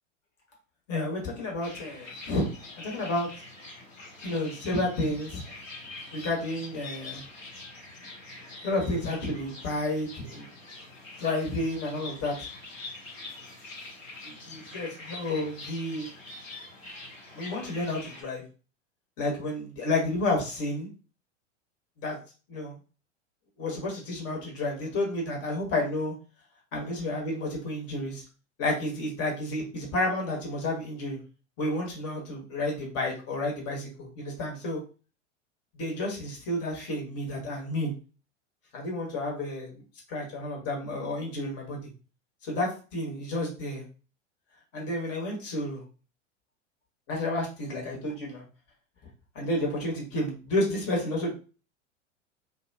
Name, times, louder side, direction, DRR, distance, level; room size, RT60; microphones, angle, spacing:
voice 1, 0.9-2.4 2.8-3.3 4.2-5.4 6.1-7.2 8.6-10.5 11.2-12.3 14.2-16.1 17.3-18.4 19.2-20.9 22.0-22.2 22.5-22.7 23.6-26.1 26.7-28.2 28.6-31.2 31.6-33.9 34.2-34.8 35.7-37.9 38.7-39.7 40.1-41.8 42.4-43.8 44.7-45.8 47.1-48.4 49.3-51.4, left 2 dB, 40° left, -1 dB, 1.3 m, -31 dB
sound 1, 1.6-18.2, left 3 dB, 90° left, 1.0 m, -44 dB
2.4 x 2.3 x 2.6 m, 0.35 s
figure-of-eight pair, 90°, 37 cm